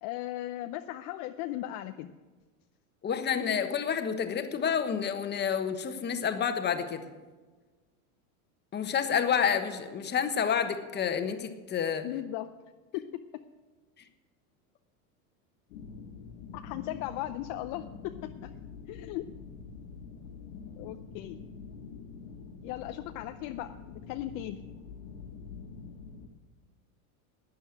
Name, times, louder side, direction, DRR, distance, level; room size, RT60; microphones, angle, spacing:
voice 1, 0.0-2.1 12.0-12.5 12.9-13.4 16.5-18.5 18.9-19.2 20.8-21.4 22.6-23.8 24.1-24.6, left 14 dB, 45° left, 8 dB, 0.6 m, -37 dB
voice 2, 3.0-7.0 8.7-12.1, left 7 dB, 25° left, 8 dB, 1.3 m, -29 dB
sound 1, 15.7-26.3, left 5 dB, 80° left, 1.8 m, -46 dB
12.0 x 9.5 x 9.0 m, 1.3 s
supercardioid pair, 130°, 43 cm